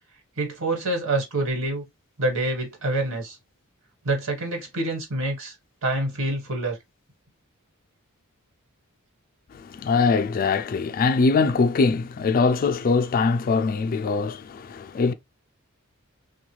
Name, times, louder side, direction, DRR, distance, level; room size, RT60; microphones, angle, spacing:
voice 1, 0.4-1.8 2.2-3.4 4.0-5.5 5.8-6.8, right 2 dB, 60° right, 1.3 m, -26 dB
voice 2, 9.5-15.1, left 4 dB, 40° left, 0.3 m, -22 dB
3.0 x 2.3 x 3.1 m
head